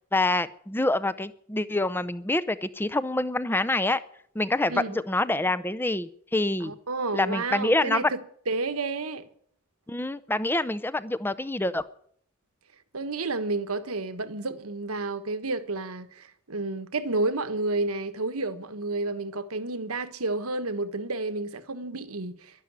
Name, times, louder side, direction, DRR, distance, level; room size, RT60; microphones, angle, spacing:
voice 1, 0.1-4.0 4.3-6.7 7.1-8.1 9.9-11.8, left 2 dB, 10° left, 0.6 m, -26 dB
voice 2, 4.7-5.0 6.6-8.2 8.5-9.2 12.9-22.6, right 3 dB, 80° right, 1.3 m, -31 dB
12.0 x 11.5 x 9.5 m
head